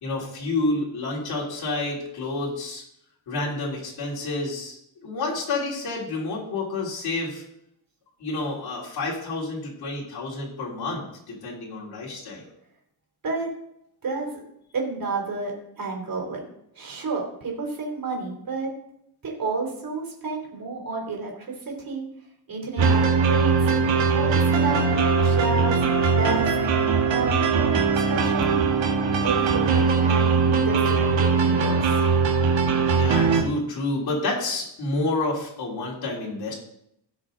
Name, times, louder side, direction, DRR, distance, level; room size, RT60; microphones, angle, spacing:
voice 1, 0.0-2.8 3.3-4.8 5.0-7.4 8.2-12.5 32.9-36.5, left 2 dB, 55° left, -5 dB, 3.3 m, -29 dB
voice 2, 14.0-14.4 14.7-16.4 16.7-18.7 19.2-21.3 21.7-22.0 22.5-23.5 24.1-25.8 26.2-26.5 26.8-27.8 28.1-28.7 29.2-32.0, right 4 dB, 50° right, 0 dB, 3.3 m, -30 dB
sound 1, 22.8-33.4, right 5 dB, 80° right, 1.7 m, -21 dB
16.5 x 6.0 x 3.9 m, 0.77 s
cardioid pair, 130°, 44 cm